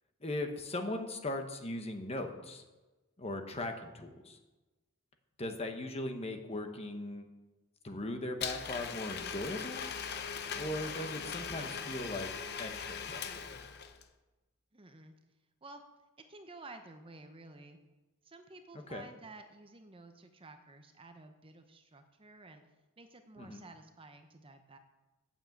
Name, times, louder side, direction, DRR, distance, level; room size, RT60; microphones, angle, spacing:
voice 1, 0.2-2.6 3.2-4.4 5.4-7.3 7.8-9.9 10.5-12.3 12.6-13.5 18.9-19.1 23.4-23.6, left 1 dB, 30° left, 6 dB, 1.0 m, -39 dB
Domestic sounds home sounds, 8.4-14.1, left 6 dB, 50° left, 0.7 m, -40 dB
voice 2, 14.7-15.1 15.6-15.8 16.3-17.8 18.2-22.6 23.0-24.8, right 2 dB, 25° right, 7 dB, 0.7 m, -52 dB
8.8 x 7.2 x 7.8 m, 1.2 s
head